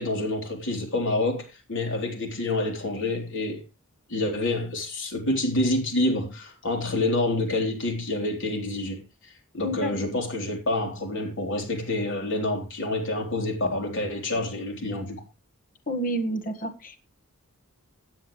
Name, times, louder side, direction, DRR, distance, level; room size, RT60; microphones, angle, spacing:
voice 1, 0.0-3.6 4.1-15.2, left 2 dB, 60° left, 3.7 m, -28 dB
voice 2, 9.6-10.0 15.9-17.0, right 1 dB, 40° left, 1.6 m, -29 dB
16.0 x 9.1 x 3.2 m
head